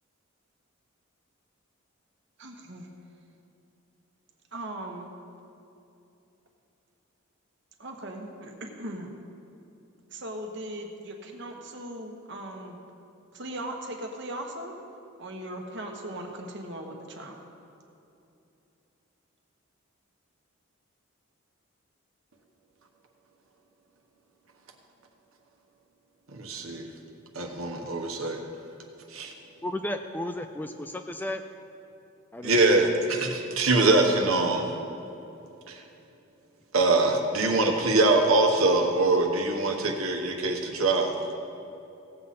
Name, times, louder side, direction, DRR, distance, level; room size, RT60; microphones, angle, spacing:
voice 1, 2.4-2.9 4.5-5.1 7.8-9.1 10.1-12.8 13.3-14.8 15.2-17.4, right 1 dB, 55° right, 2 dB, 1.2 m, -38 dB
voice 2, 26.3-26.9 27.3-28.4 29.1-29.3 32.4-34.6 35.7-35.8 36.7-41.1, right 2 dB, 80° right, 3 dB, 1.3 m, -23 dB
voice 3, 29.6-31.4 32.3-32.7, left 1 dB, 10° left, 6 dB, 0.3 m, -34 dB
16.5 x 7.6 x 4.2 m, 2.8 s
head